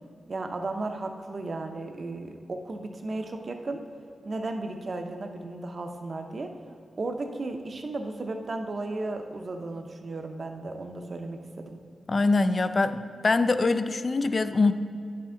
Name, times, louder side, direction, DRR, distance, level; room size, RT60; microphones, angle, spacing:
voice 1, 0.3-3.8 4.2-6.5 7.0-11.8, right 2 dB, 45° right, 5 dB, 0.6 m, -34 dB
voice 2, 12.1-14.7, left 3 dB, 40° left, 11 dB, 0.3 m, -23 dB
9.9 x 5.7 x 3.7 m, 2.3 s
wide cardioid pair, 115°, 0 cm